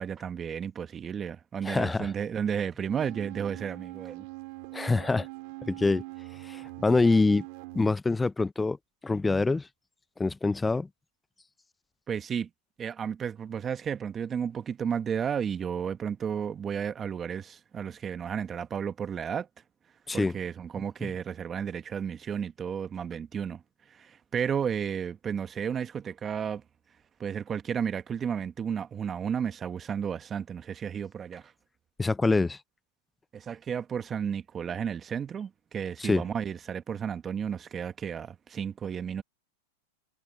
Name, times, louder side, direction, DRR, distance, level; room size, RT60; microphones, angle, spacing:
voice 1, 0.0-4.3 12.1-12.5 12.8-19.5 20.1-23.6 23.9-26.6 27.2-31.5 33.3-39.2, right 7 dB, 25° right, 1.1 m, -33 dB
voice 2, 1.6-2.1 4.7-5.3 5.7-6.0 6.5-7.4 7.7-8.8 9.0-9.7 10.2-10.9 20.1-20.3 32.0-32.6 36.0-36.2, left 3 dB, 10° left, 0.4 m, -25 dB
annoying cwejman sounds, 2.8-7.9, right 24 dB, 55° right, 2.4 m, -42 dB
hypercardioid pair, 110°, 0 cm